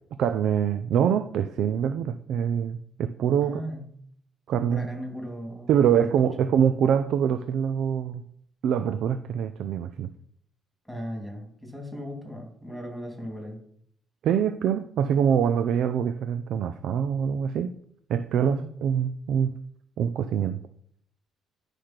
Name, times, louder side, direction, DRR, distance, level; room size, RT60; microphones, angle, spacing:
voice 1, 0.2-3.6 4.5-4.9 5.7-8.2 8.6-10.1 14.2-17.7 18.1-19.5 20.0-20.6, right 8 dB, 65° right, 11 dB, 0.5 m, -24 dB
voice 2, 3.4-3.9 4.7-6.1 10.8-13.6 18.4-18.7, equal, 5° right, 0 dB, 2.6 m, -37 dB
10.5 x 5.0 x 5.9 m, 0.65 s
cardioid pair, 160°, 0 cm